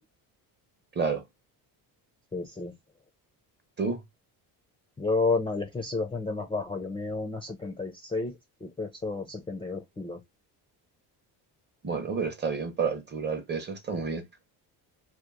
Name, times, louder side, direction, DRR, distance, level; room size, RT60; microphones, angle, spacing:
voice 1, 0.9-1.2 3.8-4.0 11.8-14.2, right 5 dB, 25° right, 0.6 m, -30 dB
voice 2, 2.3-2.7 5.0-10.2, left 3 dB, 15° left, 0.4 m, -31 dB
2.9 x 2.0 x 2.3 m
cardioid pair, 135°, 41 cm